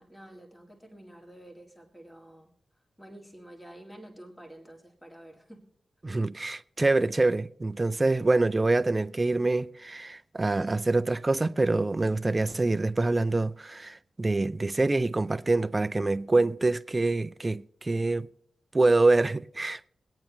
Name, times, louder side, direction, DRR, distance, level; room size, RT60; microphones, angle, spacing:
voice 1, 0.0-2.5 3.0-5.7, right 1 dB, 10° left, 2.1 m, -49 dB
voice 2, 6.0-18.3 18.7-19.9, right 2 dB, 30° right, 0.4 m, -25 dB
23.0 x 8.9 x 3.0 m
cardioid pair, 60°, 0 cm